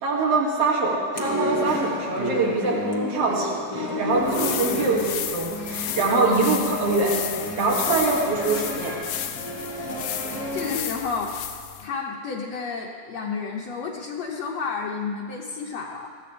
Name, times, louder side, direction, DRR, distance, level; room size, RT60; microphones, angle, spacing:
voice 1, 0.0-7.2 7.6-8.9, right 3 dB, 50° right, -3 dB, 3.1 m, -24 dB
sound 1, 1.1-10.8, left 1 dB, 25° left, 1.0 m, -31 dB
sound 2, 4.1-11.9, left 12 dB, 90° left, 2.5 m, -33 dB
voice 2, 10.5-11.4 11.8-16.1, left 5 dB, 65° left, -1 dB, 1.9 m, -31 dB
21.0 x 15.0 x 3.4 m, 2.2 s
omnidirectional pair, 3.9 m